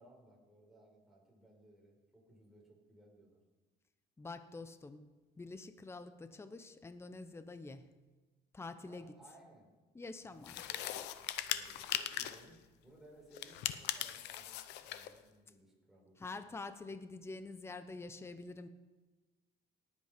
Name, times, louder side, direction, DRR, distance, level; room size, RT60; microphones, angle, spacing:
voice 1, 0.0-3.4 8.9-9.7 10.2-16.2, right 1 dB, ahead, -2 dB, 4.7 m, -61 dB
voice 2, 4.2-5.1 5.4-7.9 8.5-9.1 9.9-10.6 16.2-18.7, left 3 dB, 15° left, 11 dB, 0.8 m, -47 dB
sound 1, 10.4-12.5 13.3-15.1, left 13 dB, 90° left, 0.8 m, -39 dB
18.5 x 8.5 x 5.1 m, 1.2 s
cardioid pair, 110°, 17 cm